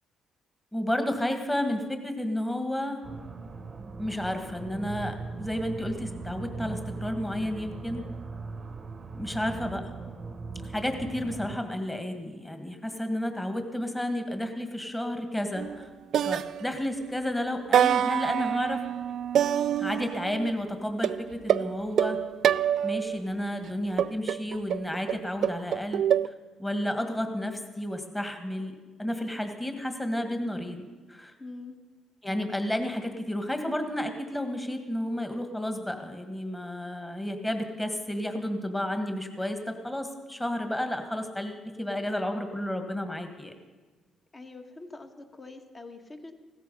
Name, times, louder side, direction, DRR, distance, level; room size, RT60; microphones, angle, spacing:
voice 1, 0.7-3.0 4.0-8.1 9.1-9.9 10.6-15.9 16.2-18.8 19.8-22.2 22.8-26.1 26.6-30.8 31.1-31.3 32.2-43.5, left 1 dB, 10° left, 6 dB, 1.9 m, -31 dB
sound 1, 3.0-11.6, right 4 dB, 35° right, 1.0 m, -39 dB
sound 2, 15.6-15.8 16.1-17.2 17.7-20.5 21.0-23.2 24.0-26.3, right 9 dB, 70° right, 0.4 m, -26 dB
voice 2, 31.4-31.8 44.3-46.3, left 3 dB, 30° left, 5 dB, 1.7 m, -44 dB
16.5 x 14.0 x 5.6 m, 1.3 s
cardioid pair, 90°, 0 cm